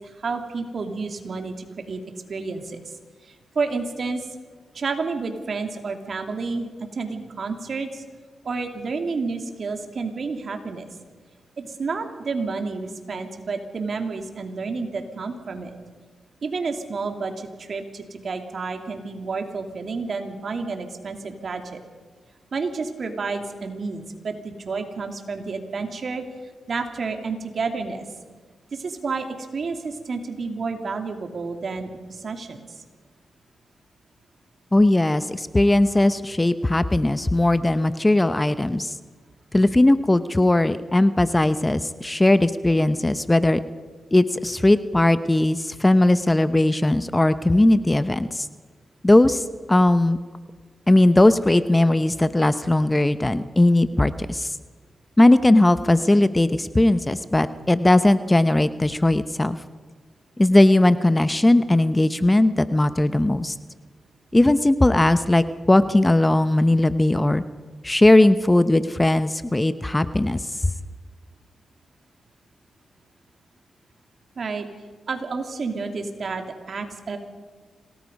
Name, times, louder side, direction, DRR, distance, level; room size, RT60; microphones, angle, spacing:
voice 1, 0.0-2.0 2.3-2.8 3.2-4.3 4.7-8.0 8.4-10.9 11.6-15.8 16.4-21.8 22.5-26.2 26.7-28.1 28.7-32.6 74.4-74.7 75.1-77.2, right 4 dB, 60° right, 5 dB, 2.7 m, -30 dB
voice 2, 34.7-38.9 39.5-43.6 44.1-48.5 49.0-50.2 50.9-54.5 55.2-59.6 60.4-63.5 64.3-67.4 67.8-70.7, left 1 dB, 20° left, 13 dB, 0.8 m, -18 dB
26.5 x 18.5 x 5.4 m, 1.5 s
cardioid pair, 70°, 0 cm